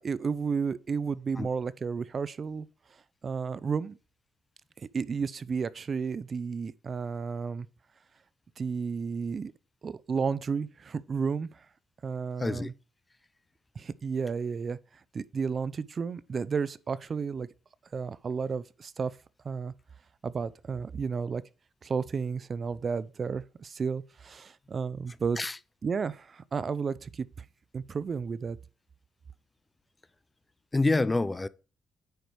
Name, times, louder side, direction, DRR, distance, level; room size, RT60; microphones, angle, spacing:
voice 1, 0.0-2.7 3.2-4.0 4.8-7.7 8.6-9.5 9.8-11.7 12.0-12.7 13.8-14.8 15.1-17.5 17.9-19.2 19.4-19.7 20.2-21.4 21.8-25.4 25.8-27.4 27.7-28.6, right 5 dB, 40° right, 0.5 m, -32 dB
voice 2, 12.4-12.7 25.4-25.6 30.7-31.5, left 2 dB, 20° left, 0.4 m, -26 dB
9.4 x 4.9 x 4.6 m
cardioid pair, 90°, 0 cm